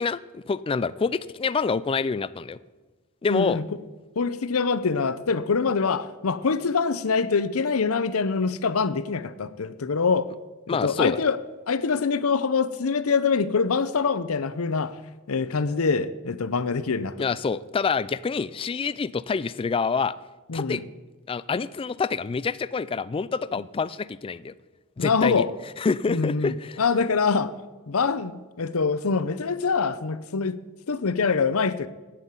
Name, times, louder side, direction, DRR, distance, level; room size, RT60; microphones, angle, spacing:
voice 1, 0.0-2.6 3.2-3.6 10.7-11.2 17.2-20.2 20.5-20.8 21.3-24.5 25.0-25.4 25.8-26.8, left 5 dB, 25° left, 0.3 m, -27 dB
voice 2, 3.3-3.6 4.2-10.3 10.7-11.4 11.7-15.0 15.3-17.3 20.5-20.8 25.0-25.5 26.1-27.5 27.9-31.9, left 5 dB, 70° left, 0.7 m, -24 dB
9.4 x 9.2 x 8.2 m
head